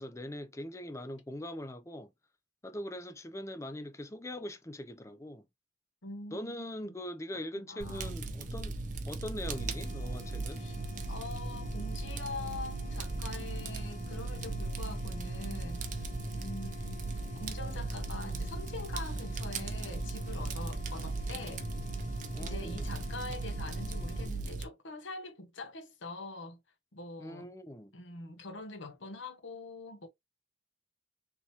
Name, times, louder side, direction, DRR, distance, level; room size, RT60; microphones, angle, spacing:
voice 1, 0.0-2.1 2.6-5.4 6.3-8.8 9.1-10.6 22.3-22.9 27.2-27.9, left 1 dB, 15° left, 0.4 m, -42 dB
voice 2, 6.0-6.7 7.6-8.2 10.5-10.8 11.1-21.7 22.4-26.6 26.9-27.5 27.9-30.1, left 3 dB, 80° left, 1.0 m, -44 dB
Fire, 7.8-24.6, right 3 dB, 40° right, 0.6 m, -37 dB
sound 1, 9.4-24.3, left 1 dB, 40° left, 1.1 m, -50 dB
3.6 x 2.8 x 2.8 m
head